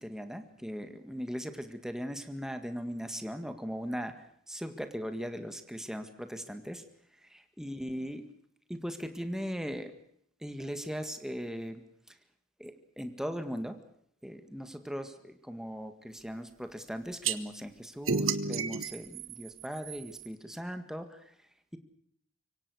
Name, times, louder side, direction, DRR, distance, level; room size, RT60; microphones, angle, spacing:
voice 1, 0.0-4.2 4.5-6.8 7.3-8.2 8.7-9.9 10.4-11.8 12.6-13.8 14.2-21.2, equal, 5° right, 7 dB, 1.9 m, -39 dB
sound 1, 17.2-17.4 18.1-20.3, right 5 dB, 75° right, 1.5 m, -32 dB
26.0 x 24.0 x 6.4 m, 0.67 s
head